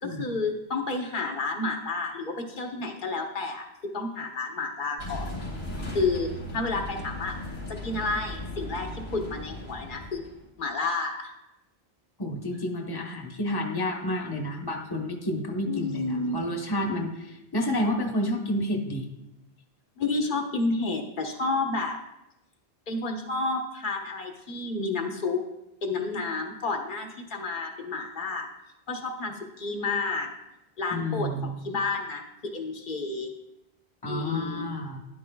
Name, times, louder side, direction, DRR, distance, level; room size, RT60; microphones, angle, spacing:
voice 1, 0.0-3.6 3.9-5.3 5.9-7.4 7.7-10.3 10.6-11.3 15.7-16.4 20.0-22.0 22.9-25.4 25.8-28.5 28.9-30.3 30.8-33.3 34.1-34.7, left 3 dB, 55° left, 2 dB, 1.2 m, -30 dB
sound 1, 5.0-10.5, left 1 dB, 80° left, 2.6 m, -37 dB
voice 2, 12.2-19.1 30.9-31.5 34.0-35.0, left 1 dB, 25° left, 2 dB, 1.1 m, -30 dB
12.5 x 10.5 x 2.3 m, 0.90 s
omnidirectional pair, 1.1 m